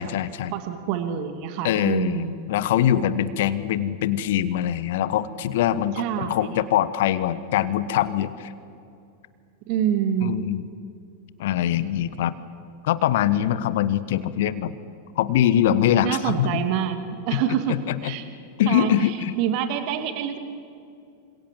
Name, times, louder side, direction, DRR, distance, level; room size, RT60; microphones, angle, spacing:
voice 1, 0.0-0.5 1.6-8.5 10.2-10.7 11.4-12.3 12.8-14.7 15.2-16.6 17.3-17.4 17.7-18.1 18.6-19.3, left 11 dB, 55° left, 15 dB, 1.2 m, -23 dB
voice 2, 0.5-2.3 5.9-6.6 9.7-10.3 16.0-17.0 17.2-18.3 18.7-20.4, right 9 dB, 45° right, 8 dB, 2.1 m, -26 dB
28.5 x 26.5 x 7.5 m, 2.5 s
figure-of-eight pair, 90°, 0 cm